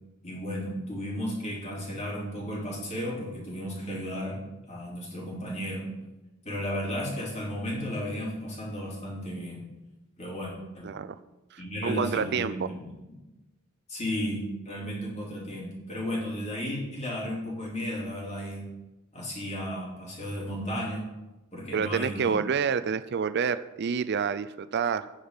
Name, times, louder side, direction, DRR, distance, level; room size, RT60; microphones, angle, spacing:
voice 1, 0.2-4.4 4.7-5.9 6.4-9.6 10.2-10.9 11.6-12.9 13.9-18.7 19.1-21.1 21.5-22.4, equal, 35° left, -4 dB, 3.8 m, -34 dB
voice 2, 10.8-11.2 11.5-12.7 21.7-25.1, right 6 dB, 55° right, 13 dB, 0.4 m, -28 dB
9.7 x 8.8 x 5.1 m, 1.0 s
head